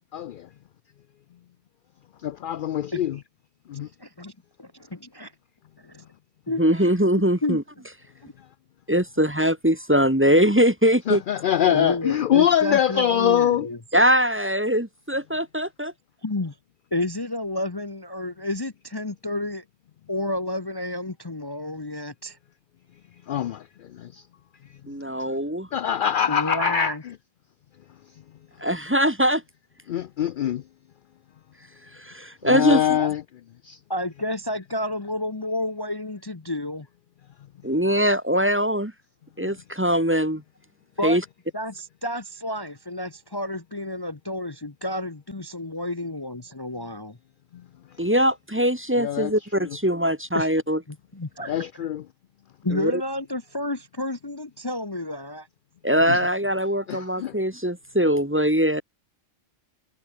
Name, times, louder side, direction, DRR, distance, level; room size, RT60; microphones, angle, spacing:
voice 1, 0.1-0.5 2.2-3.2 3.7-3.9 11.1-13.7 23.3-23.7 23.9-24.2 25.7-26.9 29.9-30.6 32.4-33.2 33.6-33.8 49.0-49.3 49.6-49.7 51.5-52.0 56.1-56.2 56.9-57.3, left 10 dB, 65° left, 0.5 m, -23 dB
voice 2, 4.0-4.3 4.6-5.3 5.8-6.0 6.5-6.9 7.4-7.6 8.2-8.3 11.6-13.8 16.2-16.5 16.9-19.6 20.1-22.4 26.3-27.0 33.0-33.1 33.9-36.9 41.0-41.2 41.5-47.2 50.3-50.5 50.9-51.9 52.6-55.5, left 1 dB, 20° left, 0.9 m, -30 dB
voice 3, 6.6-7.6 8.9-11.2 13.9-15.9 24.9-25.7 28.6-29.4 32.0-33.0 37.6-38.9 39.4-40.4 41.0-41.2 48.0-50.8 52.7-53.0 55.8-58.8, equal, 10° right, 1.5 m, -22 dB
omnidirectional pair, 1.3 m